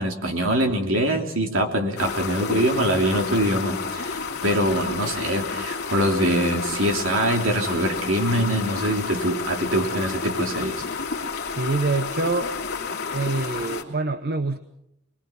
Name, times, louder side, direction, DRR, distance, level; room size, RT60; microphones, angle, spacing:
voice 1, 0.0-10.8, right 1 dB, 60° right, 3 dB, 3.1 m, -24 dB
sound 1, 2.0-13.8, left 5 dB, 50° left, 3.0 m, -30 dB
voice 2, 11.6-12.5 13.1-14.6, right 3 dB, 45° right, 10 dB, 0.9 m, -25 dB
25.5 x 21.0 x 5.9 m, 0.82 s
head